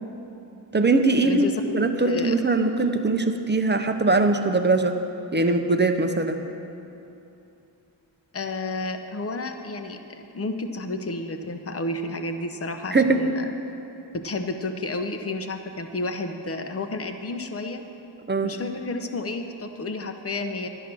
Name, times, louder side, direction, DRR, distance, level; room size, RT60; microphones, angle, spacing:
voice 1, 0.7-5.0 5.3-6.5 12.9-13.2 18.3-18.5, right 3 dB, 25° right, 6 dB, 0.8 m, -21 dB
voice 2, 1.2-2.3 8.3-13.5 14.1-17.8 18.4-20.7, left 2 dB, 30° left, 6 dB, 0.9 m, -31 dB
12.0 x 10.0 x 6.1 m, 2.8 s
wide cardioid pair, 90°, 46 cm